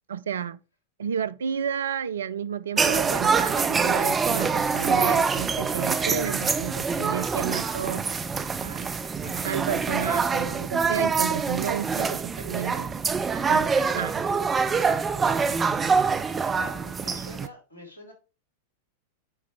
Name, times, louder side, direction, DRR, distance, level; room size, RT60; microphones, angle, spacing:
voice 1, 0.1-0.6 1.0-8.1 8.6-12.9 13.5-14.2, right 8 dB, 65° right, 0.4 m, -31 dB
sound 1, 2.8-17.5, right 5 dB, 20° right, 0.6 m, -25 dB
voice 2, 16.4-18.1, left 1 dB, 75° left, 2.2 m, -45 dB
7.9 x 4.7 x 3.3 m
figure-of-eight pair, 90°, 0 cm